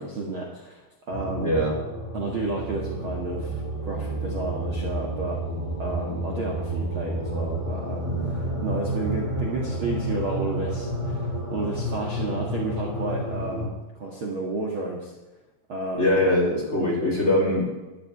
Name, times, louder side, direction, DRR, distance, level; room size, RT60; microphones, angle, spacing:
voice 1, 0.0-1.5 2.1-5.4 5.8-15.1 15.7-16.2, right 2 dB, 65° right, -1 dB, 1.3 m, -32 dB
sound 1, 1.1-13.7, right 1 dB, 10° right, 2.1 m, -30 dB
voice 2, 1.4-1.8 8.0-8.3 16.0-17.7, left 1 dB, 15° left, -3 dB, 3.8 m, -22 dB
12.5 x 8.8 x 9.8 m, 1.1 s
omnidirectional pair, 5.3 m